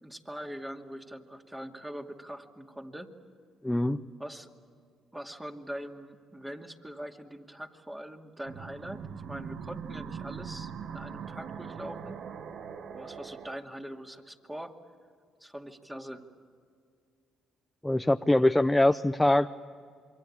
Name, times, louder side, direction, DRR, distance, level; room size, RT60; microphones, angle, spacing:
voice 1, 0.0-3.1 4.2-4.5 5.1-12.2 12.9-14.8 15.4-16.3, equal, 10° right, 3 dB, 2.5 m, -42 dB
voice 2, 3.6-4.0 17.8-19.5, left 1 dB, 10° left, 9 dB, 0.6 m, -23 dB
sound 1, 8.5-13.6, right 7 dB, 60° right, 1.2 m, -41 dB
27.5 x 24.0 x 8.6 m, 2.2 s
supercardioid pair, 75°, 0 cm